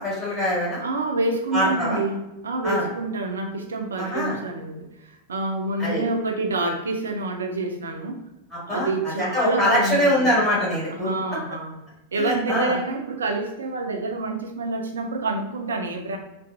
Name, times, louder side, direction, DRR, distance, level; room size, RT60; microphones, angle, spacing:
voice 1, 0.0-0.8 1.5-2.0 2.6-2.8 4.0-4.3 5.8-6.0 8.7-8.9 9.2-11.1 12.2-12.7, left 1 dB, 10° left, -7 dB, 1.2 m, -23 dB
voice 2, 0.8-8.2 8.7-10.3 10.9-11.8 12.1-16.2, right 2 dB, 70° right, 3 dB, 0.4 m, -27 dB
2.4 x 2.3 x 2.2 m, 0.95 s
figure-of-eight pair, 90°, 0 cm